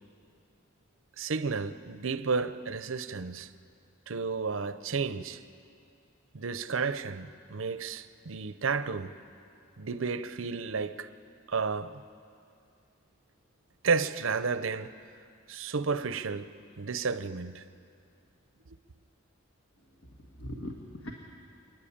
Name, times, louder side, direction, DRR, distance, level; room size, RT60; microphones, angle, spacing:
voice 1, 1.2-3.5 4.1-5.4 6.3-9.1 9.8-11.1 11.5-12.0 13.8-14.9 15.5-17.6 18.7-18.8, right 4 dB, 80° right, 0.7 m, -32 dB
voice 2, 19.8-21.1, equal, 85° left, 1.7 m, -42 dB
28.5 x 10.5 x 8.7 m
head